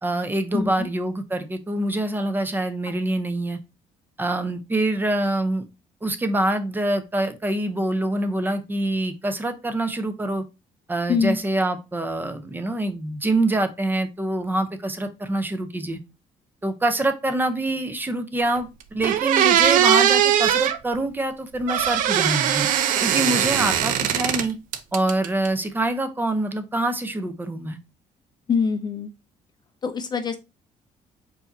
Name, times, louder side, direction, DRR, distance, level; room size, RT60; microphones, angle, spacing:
voice 1, 0.0-3.6 4.2-5.6 6.0-10.4 10.9-16.0 16.6-22.7 23.0-24.6 24.9-27.8, right 1 dB, 15° right, 0.6 m, -25 dB
voice 2, 0.5-0.9 11.1-11.4 28.5-29.1 29.8-30.4, left 5 dB, 30° left, 0.4 m, -24 dB
sound 1, 18.5-18.6 19.0-20.8 21.7-24.5 24.7-25.5, right 10 dB, 80° right, 0.5 m, -20 dB
4.7 x 2.7 x 4.0 m
cardioid pair, 135°, 13 cm